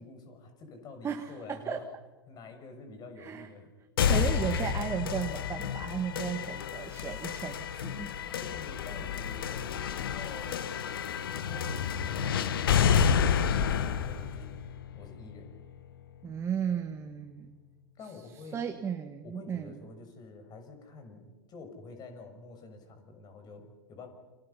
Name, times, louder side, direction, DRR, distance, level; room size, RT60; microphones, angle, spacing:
voice 1, 0.0-1.8 2.3-3.7 8.4-10.6 11.3-14.7 14.9-15.6 17.9-18.6 19.2-24.1, left 3 dB, 35° left, 6 dB, 6.2 m, -48 dB
voice 2, 1.0-1.8 3.2-3.5 4.1-8.1 16.2-17.6 18.5-19.9, right 7 dB, 20° right, 6 dB, 1.6 m, -35 dB
sound 1, 4.0-15.9, left 7 dB, 70° left, 1.6 m, -30 dB
29.5 x 26.5 x 5.8 m, 1.2 s
hypercardioid pair, 100°, 12 cm